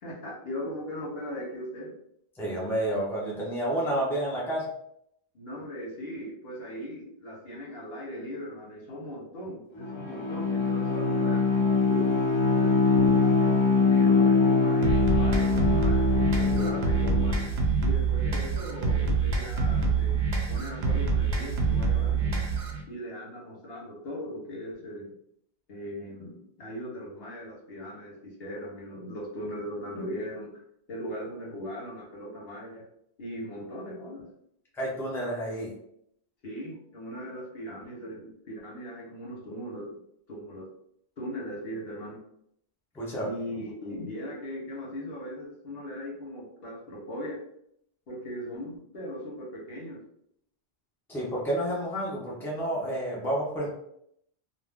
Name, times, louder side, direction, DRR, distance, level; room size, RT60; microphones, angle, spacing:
voice 1, 0.0-1.9 5.3-12.2 12.5-17.4 17.8-22.5 22.9-25.1 25.7-30.6 30.9-32.8 33.2-34.3 36.4-39.9 40.3-40.7 41.2-42.2 43.2-47.4 48.1-50.0, equal, 70° left, -4 dB, 1.1 m, -39 dB
voice 2, 2.4-4.7 34.7-35.7 43.0-43.3 51.1-53.7, right 1 dB, 5° left, -5 dB, 0.6 m, -30 dB
Bowed string instrument, 9.8-17.5, left 4 dB, 45° left, 0.4 m, -23 dB
sound 1, 14.8-22.8, right 4 dB, 80° right, 0.9 m, -26 dB
2.5 x 2.1 x 3.4 m, 0.73 s
omnidirectional pair, 1.0 m